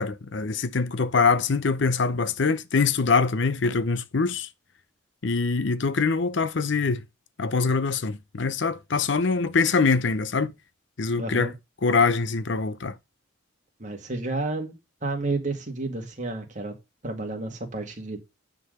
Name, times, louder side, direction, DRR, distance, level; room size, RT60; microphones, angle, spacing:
voice 1, 0.0-4.5 5.2-7.0 7.4-10.5 11.0-11.5 11.8-13.0, left 4 dB, 60° left, 0.6 m, -24 dB
voice 2, 11.2-11.5 13.8-14.8 15.0-16.7 17.0-18.2, right 2 dB, 35° right, 2.0 m, -31 dB
9.6 x 3.9 x 6.5 m
head